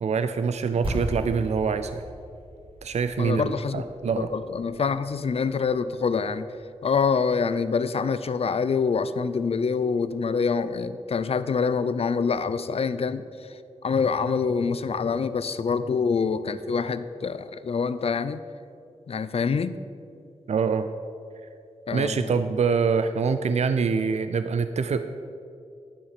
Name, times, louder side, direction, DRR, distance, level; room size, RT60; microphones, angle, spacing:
voice 1, 0.0-2.0 2.8-4.3 20.5-20.9 21.9-25.1, right 5 dB, 70° right, 10 dB, 0.5 m, -25 dB
sound 1, 0.8-6.6, equal, 45° right, 2.8 m, -37 dB
voice 2, 3.2-3.9 4.2-6.5 6.8-13.2 13.8-18.4 19.1-19.8 21.9-22.3, left 5 dB, 55° left, 13 dB, 0.5 m, -26 dB
11.5 x 7.2 x 6.8 m, 2.5 s
wide cardioid pair, 135°, 12 cm